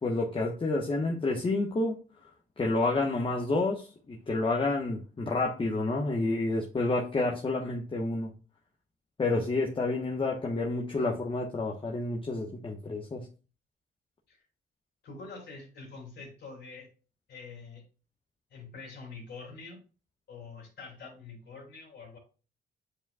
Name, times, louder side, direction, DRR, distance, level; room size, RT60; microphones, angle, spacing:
voice 1, 0.0-2.0 2.6-8.3 9.2-13.3, left 2 dB, 25° left, -1 dB, 1.1 m, -29 dB
voice 2, 15.0-16.9 17.3-17.8 18.5-19.8 20.3-22.2, left 4 dB, 60° left, -2 dB, 3.3 m, -45 dB
8.8 x 4.8 x 2.3 m, 0.35 s
cardioid pair, 90°, 20 cm